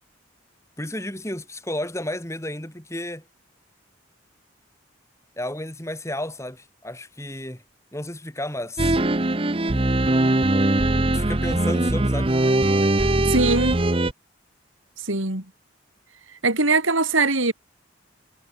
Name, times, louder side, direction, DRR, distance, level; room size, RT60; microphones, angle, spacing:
voice 1, 0.8-3.2 5.4-7.6 7.9-9.0 11.1-12.3, left 1 dB, 15° left, 4.4 m, -32 dB
sound 1, 8.8-14.1, right 1 dB, 25° right, 0.9 m, -21 dB
voice 2, 13.3-13.8 15.0-15.4 16.4-17.5, right 3 dB, 80° right, 4.5 m, -21 dB
head